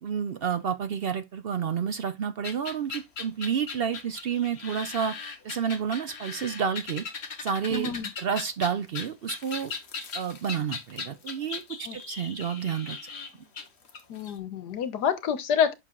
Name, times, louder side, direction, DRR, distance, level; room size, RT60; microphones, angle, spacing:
voice 1, 0.0-5.1 5.4-7.0 7.4-7.9 8.2-9.7 10.1-13.0, right 7 dB, 60° right, 0.6 m, -30 dB
sound 1, 2.4-14.3, left 5 dB, 45° left, 1.3 m, -38 dB
voice 2, 7.7-8.1 11.9-12.0 14.1-15.7, left 8 dB, 90° left, 1.6 m, -27 dB
7.9 x 5.9 x 2.3 m
omnidirectional pair, 1.7 m